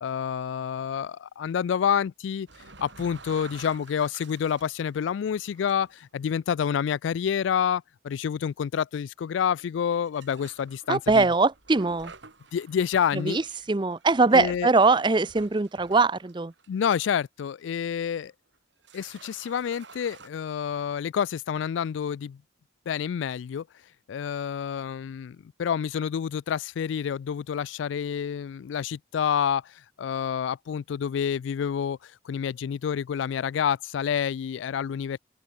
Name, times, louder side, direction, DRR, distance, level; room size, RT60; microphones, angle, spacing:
voice 1, 0.0-2.5 2.8-11.2 12.5-13.4 14.3-14.7 16.7-18.3 18.9-22.4 22.9-23.7 24.1-35.2, left 8 dB, 75° left, 0.3 m, -28 dB
sound 1, 2.5-6.0 6.5-6.7 7.3-7.5 8.3-8.4 9.9-17.2 17.6-17.7 18.5-18.6 18.8-20.3, right 4 dB, 65° right, 3.6 m, -50 dB
voice 2, 10.9-12.1 13.1-13.4 13.7-16.5, right 3 dB, 25° right, 0.5 m, -22 dB
open air
head